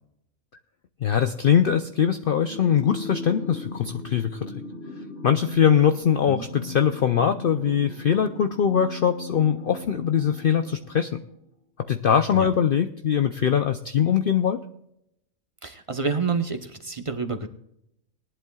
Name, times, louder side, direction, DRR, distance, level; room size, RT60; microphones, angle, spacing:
voice 1, 1.0-4.6 5.2-11.2 11.9-14.6, left 8 dB, 55° left, 8 dB, 0.7 m, -22 dB
sound 1, 2.5-11.2, left 3 dB, 45° right, 2.8 m, -38 dB
voice 2, 15.6-17.5, right 4 dB, 25° right, 6 dB, 1.0 m, -28 dB
20.0 x 11.0 x 2.3 m, 0.79 s
omnidirectional pair, 1.3 m